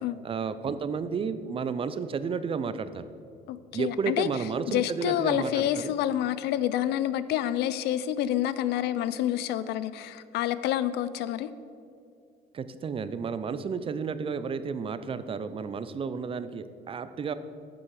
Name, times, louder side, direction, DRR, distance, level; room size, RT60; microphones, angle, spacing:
voice 1, 0.2-3.0 3.7-5.9 12.5-17.3, right 5 dB, 35° right, 13 dB, 0.4 m, -32 dB
voice 2, 3.5-4.3 4.7-11.5, left 12 dB, 80° left, 15 dB, 0.4 m, -28 dB
10.0 x 6.2 x 4.7 m, 2.5 s
cardioid pair, 110°, 17 cm